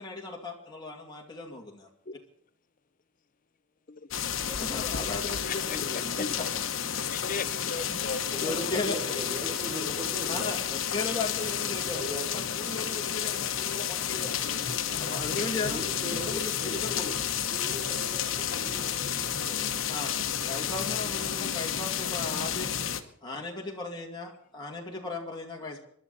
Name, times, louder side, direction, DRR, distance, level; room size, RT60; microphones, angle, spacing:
voice 1, 0.0-1.9 4.6-6.3 7.9-8.0 8.4-9.0 10.3-10.6 10.9-14.4 15.0-17.2 19.9-20.1 20.4-22.7 23.2-25.8, left 3 dB, 20° left, -1 dB, 2.5 m, -36 dB
sound 1, 4.1-23.0, left 8 dB, 70° left, 1.1 m, -31 dB
voice 2, 5.4-6.3 7.1-8.6, left 4 dB, 40° left, 14 dB, 0.6 m, -37 dB
voice 3, 8.3-10.5 11.9-12.3 14.4-14.6 15.3-17.0 17.5-19.6, equal, 30° right, -2 dB, 5.3 m, -39 dB
25.0 x 12.0 x 4.2 m, 0.64 s
head